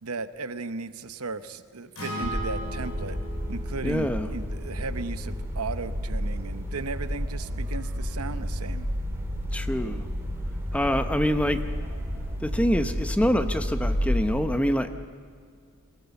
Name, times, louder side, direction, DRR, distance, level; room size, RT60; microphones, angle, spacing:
voice 1, 0.0-3.2 3.5-8.9, right 4 dB, 80° right, 12 dB, 0.9 m, -36 dB
Acoustic guitar, 1.9-6.2, equal, 75° left, 6.4 m, -39 dB
sound 1, 2.2-14.4, equal, 10° right, 2.7 m, -31 dB
voice 2, 3.8-4.3 9.5-10.1 10.7-11.6 12.4-15.0, equal, 5° left, 9 dB, 0.7 m, -25 dB
22.0 x 17.5 x 7.0 m, 2.1 s
head